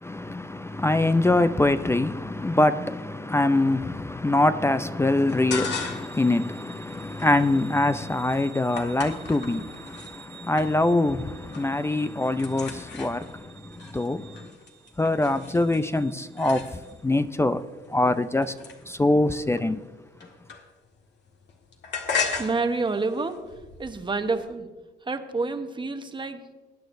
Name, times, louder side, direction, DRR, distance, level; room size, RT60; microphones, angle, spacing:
voice 1, 0.0-14.5 15.0-17.6 17.9-18.6 18.8-19.8, left 2 dB, 15° left, 0.4 m, -24 dB
sound 1, 5.3-6.2 6.6-10.1 10.6-11.1 11.3-11.8 12.1-17.1 17.8-21.0 21.3-24.5, left 5 dB, 60° left, 1.7 m, -36 dB
sound 2, 5.8-17.0, right 7 dB, 85° right, 3.5 m, -51 dB
voice 2, 22.4-23.4 23.8-24.7 25.0-26.5, right 3 dB, 25° right, 1.0 m, -28 dB
20.5 x 9.3 x 2.6 m
cardioid pair, 90°, 20 cm